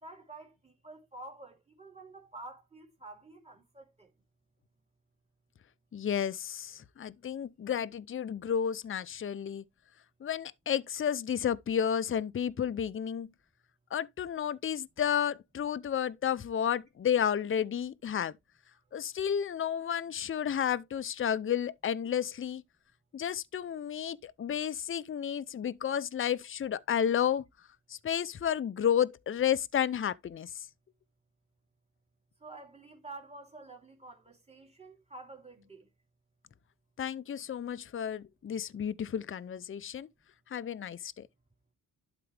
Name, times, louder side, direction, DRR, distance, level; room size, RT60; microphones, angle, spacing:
voice 1, 0.0-4.1 32.4-35.9, right 2 dB, 20° right, 3.3 m, -49 dB
voice 2, 5.9-9.6 10.2-13.3 13.9-18.3 18.9-22.6 23.1-27.4 28.0-30.5 37.0-40.1 40.5-41.3, left 9 dB, 35° left, 0.6 m, -31 dB
11.5 x 4.5 x 3.3 m
wide cardioid pair, 120°, 35 cm